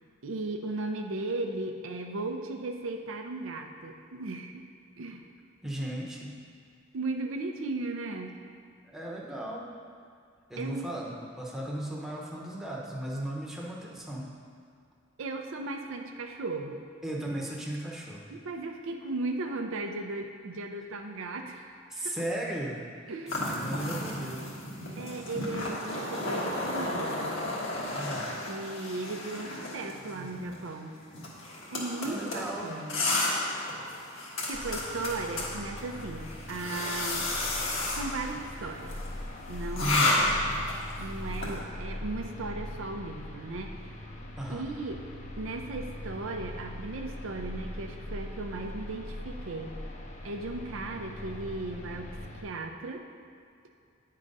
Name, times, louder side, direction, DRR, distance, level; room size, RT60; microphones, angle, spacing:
voice 1, 0.2-4.7 5.0-5.3 6.9-8.3 10.6-10.9 15.2-16.8 18.3-22.2 23.1-23.5 25.0-27.4 28.5-30.9 31.7-33.0 34.5-37.3 37.9-39.0 39.5-40.4 41.0-43.8 44.5-45.0 45.4-49.8 50.2-53.1, right 2 dB, 70° right, 3 dB, 0.5 m, -36 dB
voice 2, 5.6-6.4 8.8-9.6 10.5-14.3 17.0-18.2 21.9-23.1 23.4-24.5 27.9-28.3 32.0-32.7 39.8-40.2 44.4-44.7, right 1 dB, ahead, -4 dB, 0.8 m, -36 dB
sound 1, 23.3-41.6, left 2 dB, 70° left, 1.4 m, -33 dB
sound 2, 34.5-52.4, left 1 dB, 35° left, 0.7 m, -41 dB
8.8 x 3.8 x 5.3 m, 2.3 s
head